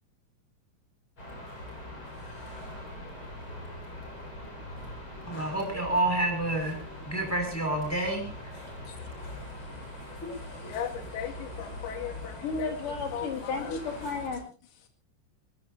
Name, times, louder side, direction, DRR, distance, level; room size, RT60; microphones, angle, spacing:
sound 1, 1.2-14.4, left 1 dB, 25° left, 7.1 m, -42 dB
voice 1, 5.3-6.8 7.1-8.3, right 2 dB, 5° left, 5.2 m, -28 dB
voice 2, 10.3-13.8, left 9 dB, 85° left, 4.9 m, -38 dB
voice 3, 12.4-14.4, left 4 dB, 45° left, 4.7 m, -33 dB
23.0 x 22.0 x 2.7 m
omnidirectional pair, 6.0 m